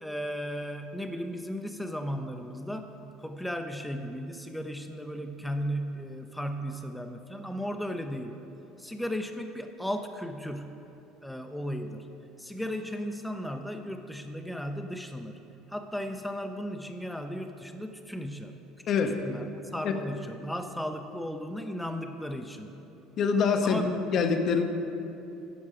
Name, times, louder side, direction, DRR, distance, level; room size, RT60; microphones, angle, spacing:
voice 1, 0.0-8.4 8.8-10.9 11.2-12.1 12.4-15.4 15.7-19.0 19.2-22.7 23.6-23.9, equal, 5° left, 6 dB, 0.5 m, -35 dB
voice 2, 18.9-19.2 19.8-19.9 23.2-23.8 24.1-24.6, left 5 dB, 45° left, 6 dB, 0.7 m, -24 dB
10.0 x 6.2 x 4.9 m, 2.9 s
figure-of-eight pair, 60°, 0 cm